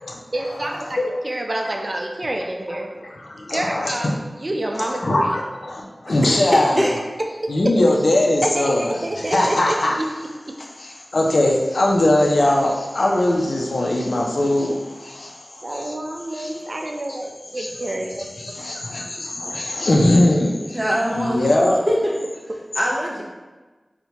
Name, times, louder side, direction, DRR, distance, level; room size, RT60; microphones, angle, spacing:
voice 1, 0.3-2.9 3.5-4.1 4.4-5.4 8.4-10.1 10.5-10.6 15.6-18.5, right 1 dB, 50° right, 1 dB, 0.4 m, -28 dB
voice 2, 0.9-1.2 3.2-4.2 4.9-6.8 7.5-9.1 9.3-9.9 10.8-15.9 16.3-16.5 17.6-17.7 18.4-20.8 21.1-21.8, left 1 dB, 80° left, -1 dB, 0.4 m, -20 dB
voice 3, 6.1-6.9 11.2-11.3 20.7-21.5 21.9-22.1 22.8-23.2, equal, 20° right, -4 dB, 0.8 m, -23 dB
4.2 x 2.1 x 2.8 m, 1.2 s
wide cardioid pair, 50°, 0 cm